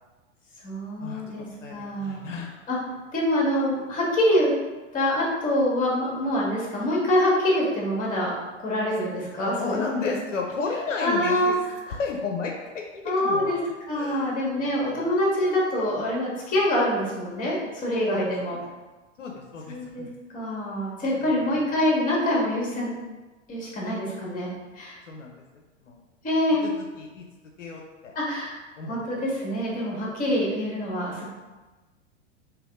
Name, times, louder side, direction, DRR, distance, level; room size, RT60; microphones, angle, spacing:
voice 1, 0.6-2.2 2.7-2.8 3.1-4.5 4.9-10.1 11.0-11.5 11.8-12.0 13.0-13.6 13.9-18.6 19.7-20.1 20.3-22.9 23.5-24.5 24.7-25.0 26.2-26.6 28.1-28.6 28.9-31.3, left 1 dB, 20° left, -4 dB, 1.5 m, -25 dB
voice 2, 1.6-2.6 9.5-11.6 11.9-13.5 13.9-15.0 18.1-18.7 19.2-20.1 21.2-21.6 25.1-26.0 26.6-26.7 27.0-27.2 27.6-28.1 28.8-29.2, left 4 dB, 75° left, 0 dB, 0.6 m, -33 dB
3.4 x 3.0 x 3.5 m, 1.2 s
figure-of-eight pair, 95°, 37 cm